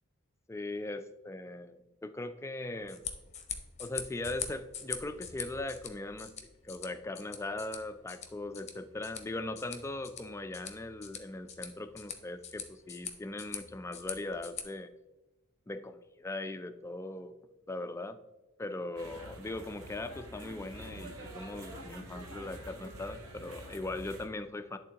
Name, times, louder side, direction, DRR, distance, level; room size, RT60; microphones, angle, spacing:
voice 1, 0.5-3.1 3.8-6.3 6.6-14.9 15.7-17.3 17.7-18.2 18.6-24.8, left 2 dB, 15° left, 9 dB, 0.3 m, -39 dB
sound 1, 2.7-14.6, left 7 dB, 30° left, 0.7 m, -44 dB
sound 2, 19.0-24.3, right 1 dB, 65° right, 1.1 m, -47 dB
11.0 x 3.6 x 2.8 m, 1.0 s
head